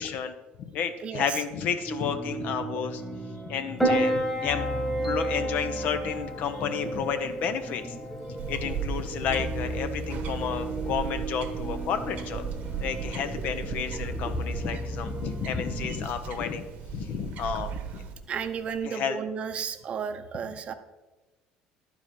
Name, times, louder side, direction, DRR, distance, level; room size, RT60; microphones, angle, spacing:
voice 1, 0.0-3.0 3.4-4.6 5.0-7.8 8.4-12.5 12.8-16.7 16.9-18.0 18.8-19.2, left 7 dB, 60° left, 9 dB, 0.8 m, -31 dB
voice 2, 1.0-1.4 18.3-20.7, right 7 dB, 40° right, 9 dB, 0.7 m, -33 dB
sound 1, 1.9-16.1, right 1 dB, 10° right, 0.7 m, -36 dB
Piano, 3.8-18.8, right 1 dB, 10° left, 1.5 m, -34 dB
sound 2, 8.4-18.1, right 7 dB, 60° right, 1.0 m, -37 dB
11.0 x 4.9 x 5.2 m, 1.1 s
cardioid pair, 115°, 3 cm